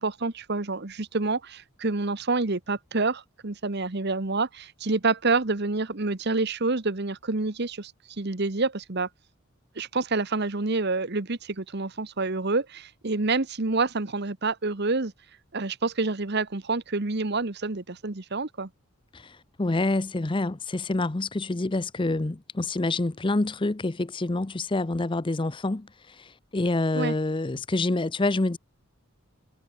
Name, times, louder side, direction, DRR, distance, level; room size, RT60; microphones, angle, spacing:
voice 1, 0.0-7.9 8.2-9.1 9.8-15.1 15.5-18.7 26.9-27.1, right 3 dB, 50° right, 1.2 m, -28 dB
voice 2, 19.1-28.6, left 2 dB, 25° left, 0.6 m, -27 dB
head